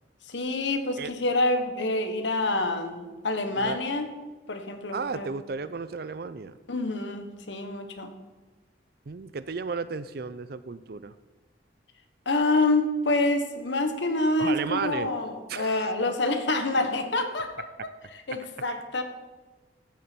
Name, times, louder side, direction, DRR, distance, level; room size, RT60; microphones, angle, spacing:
voice 1, 0.3-4.1 4.5-5.3 6.7-8.1 12.3-17.7 18.3-19.0, left 2 dB, 80° left, 7 dB, 1.1 m, -27 dB
voice 2, 4.9-6.6 9.1-11.1 14.4-15.1 15.5-15.9, right 4 dB, 55° right, 14 dB, 0.5 m, -33 dB
14.0 x 7.0 x 4.4 m, 1.2 s
head